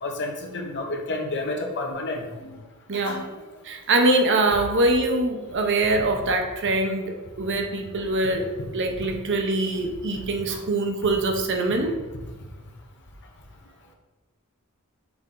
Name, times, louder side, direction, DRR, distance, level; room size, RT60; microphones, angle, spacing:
voice 1, 0.0-2.6 2.9-3.5 8.7-9.1 10.5-10.6, left 2 dB, 55° left, 2 dB, 1.0 m, -31 dB
voice 2, 2.9-3.3 3.6-12.0, right 2 dB, 55° right, 4 dB, 0.8 m, -23 dB
6.0 x 4.3 x 3.8 m, 1.2 s
head